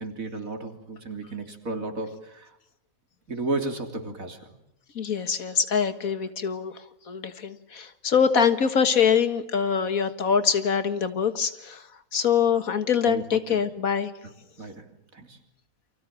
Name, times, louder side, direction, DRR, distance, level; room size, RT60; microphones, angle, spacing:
voice 1, 0.0-2.6 3.3-4.5 13.1-13.6 14.6-15.4, right 3 dB, 75° right, 6 dB, 3.6 m, -33 dB
voice 2, 5.0-11.9 12.1-14.1, left 7 dB, 75° left, 11 dB, 2.1 m, -24 dB
29.5 x 25.0 x 7.6 m, 0.79 s
omnidirectional pair, 1.5 m